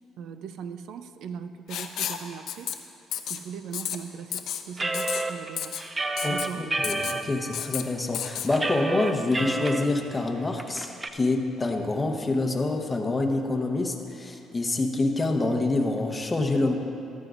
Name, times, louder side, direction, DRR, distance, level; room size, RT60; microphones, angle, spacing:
voice 1, 0.2-2.7 3.3-5.7 6.3-6.7, right 7 dB, 70° right, 10 dB, 0.5 m, -39 dB
Writing, 1.7-2.2 2.5-2.7 3.1-3.4 3.7-4.0 4.3-4.6 4.9-5.2 5.6-5.8 6.2-6.5 6.8-7.2 7.5-7.8 8.1-8.5, left 10 dB, 70° left, 0.6 m, -31 dB
sound 1, 4.8-7.2 7.7-7.8 8.2-9.8 10.2-10.3 10.6-11.1, right 2 dB, 20° right, 0.4 m, -29 dB
voice 2, 6.2-16.7, left 2 dB, 15° left, 3 dB, 0.9 m, -27 dB
14.5 x 12.5 x 2.5 m, 2.8 s
cardioid pair, 120°, 0 cm